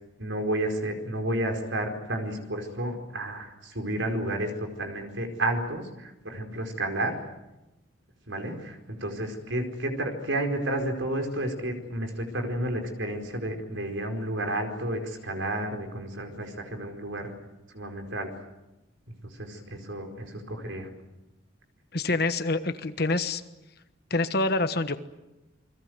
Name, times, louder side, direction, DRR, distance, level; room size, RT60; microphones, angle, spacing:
voice 1, 0.2-7.2 8.3-17.3 17.7-18.3 19.1-20.9, right 1 dB, 70° right, 5 dB, 4.8 m, -31 dB
voice 2, 21.9-23.4 24.1-25.0, left 2 dB, 50° left, 10 dB, 1.4 m, -26 dB
29.0 x 22.0 x 8.0 m, 1.0 s
head